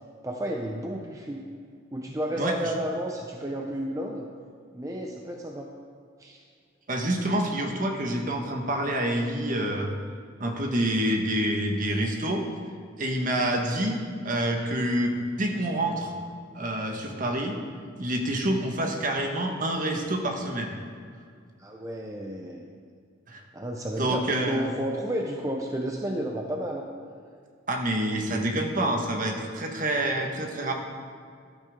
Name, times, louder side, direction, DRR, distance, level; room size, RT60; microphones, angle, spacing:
voice 1, 0.2-1.4 1.9-4.3 4.7-5.7 6.2-6.4 21.6-22.7 23.5-26.8, equal, 15° right, 1 dB, 0.7 m, -32 dB
voice 2, 6.9-9.9 10.4-12.4 13.0-16.1 16.5-17.6 18.0-20.7 23.3-23.4 24.0-24.7 27.7-30.7, right 1 dB, 45° right, 2 dB, 1.4 m, -27 dB
13.5 x 12.0 x 3.7 m, 2.2 s
head